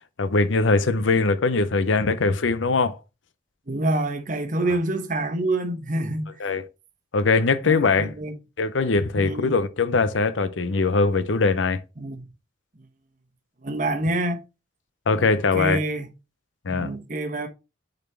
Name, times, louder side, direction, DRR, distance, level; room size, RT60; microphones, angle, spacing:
voice 1, 0.0-3.0 6.4-6.6 7.1-8.1 8.6-11.8 15.1-15.8 16.6-16.9, left 3 dB, 80° left, 0.7 m, -21 dB
voice 2, 3.7-6.3 7.6-8.3 9.2-9.5 12.0-12.2 13.6-14.4 15.2-15.3 15.5-16.1 16.7-17.5, right 1 dB, 40° right, 1.0 m, -26 dB
6.6 x 4.1 x 4.3 m
head